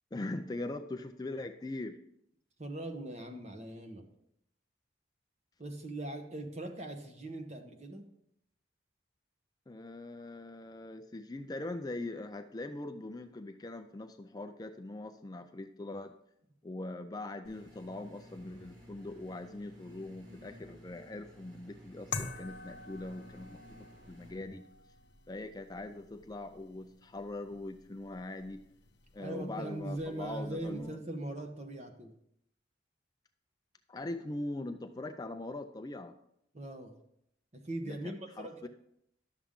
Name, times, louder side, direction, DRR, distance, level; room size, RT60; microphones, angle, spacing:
voice 1, 0.1-2.0 9.7-16.1 16.6-23.6 24.1-24.6 25.3-28.6 29.1-31.0 33.9-36.1 37.9-38.7, left 2 dB, 20° left, 7 dB, 0.4 m, -41 dB
voice 2, 2.6-4.1 5.6-8.1 29.2-32.1 36.5-36.9 37.5-38.7, right 1 dB, 35° right, 4 dB, 1.0 m, -40 dB
sound 1, 17.4-24.3, equal, 70° right, 3.4 m, -55 dB
sound 2, 22.1-30.9, left 4 dB, 70° left, 0.8 m, -48 dB
11.5 x 7.0 x 3.7 m, 0.76 s
head